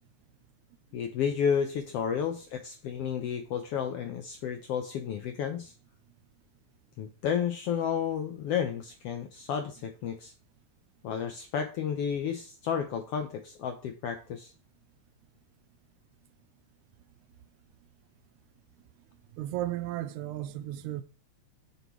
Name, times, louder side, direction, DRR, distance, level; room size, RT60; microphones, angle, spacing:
voice 1, 0.9-5.7 7.0-10.3 11.0-14.5, left 7 dB, 75° left, 1.4 m, -32 dB
voice 2, 19.4-21.0, right 13 dB, 80° right, 1.9 m, -34 dB
7.3 x 6.9 x 3.1 m
omnidirectional pair, 3.5 m